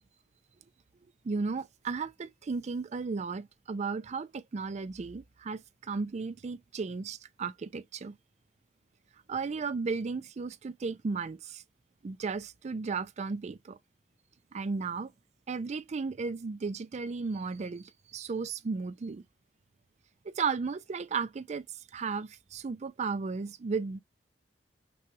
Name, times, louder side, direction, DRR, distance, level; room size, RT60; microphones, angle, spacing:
voice 1, 1.2-8.2 9.3-11.6 12.0-13.8 14.5-15.1 15.5-19.2 20.4-21.6 21.9-24.0, right 4 dB, 40° right, 0.4 m, -34 dB
6.0 x 2.3 x 3.0 m
head